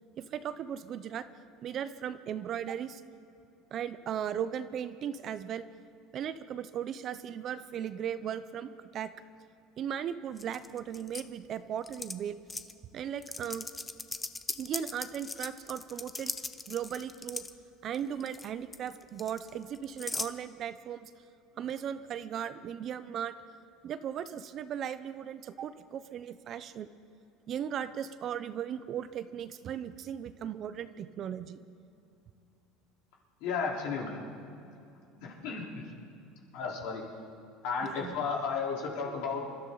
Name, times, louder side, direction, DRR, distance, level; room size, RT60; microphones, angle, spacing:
voice 1, 0.2-1.2 1.6-3.0 3.7-5.6 6.1-9.1 9.8-12.4 12.9-13.7 14.5-16.3 16.7-17.4 17.8-21.1 21.6-23.4 23.8-26.9 27.5-31.6 37.8-38.2, right 9 dB, 40° right, 12 dB, 0.7 m, -37 dB
sound 1, 10.4-11.2 11.8-12.1 12.5-12.7 13.2-17.5 17.9-18.5 18.7-20.3, left 3 dB, 10° left, 0.6 m, -39 dB
voice 2, 33.4-34.2 35.2-35.9 36.5-37.0 37.6-39.4, left 5 dB, 70° left, -2 dB, 4.1 m, -33 dB
27.0 x 13.0 x 4.0 m, 2.7 s
cardioid pair, 140°, 0 cm